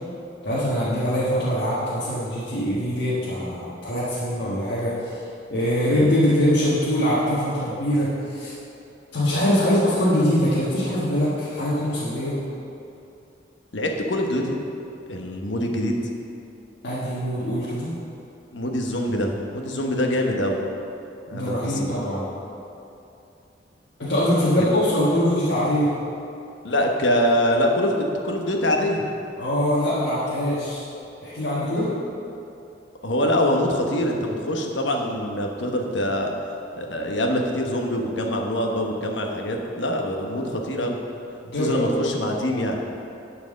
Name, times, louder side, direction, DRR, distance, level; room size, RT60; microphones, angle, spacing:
voice 1, 0.4-5.2 5.5-8.5 9.1-12.4 16.8-17.9 21.3-22.3 24.0-25.9 29.4-30.8 31.2-31.9 41.4-41.9, equal, 70° left, -9 dB, 1.6 m, -23 dB
voice 2, 13.7-14.6 15.1-16.0 18.5-20.6 21.3-22.0 26.6-29.0 33.0-36.3 36.7-41.0 41.5-42.8, left 1 dB, 85° left, 2 dB, 1.1 m, -24 dB
11.0 x 4.7 x 6.4 m, 2.8 s
head